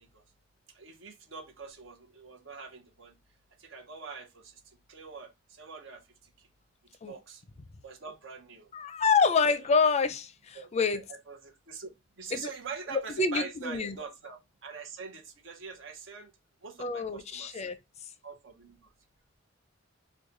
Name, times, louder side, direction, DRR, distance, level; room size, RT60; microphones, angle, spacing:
voice 1, 0.7-3.1 3.6-4.5 4.9-5.3 5.6-6.0 7.1-7.4 7.8-8.7 9.3-9.4 9.7-9.8 10.5-11.9 12.2-16.3 16.6-17.7 18.2-18.8, right 5 dB, 70° right, 0.8 m, -44 dB
voice 2, 8.7-11.0 12.3-12.5 12.9-13.9 16.8-17.8, left 5 dB, 35° left, 0.4 m, -27 dB
3.0 x 2.2 x 3.8 m
head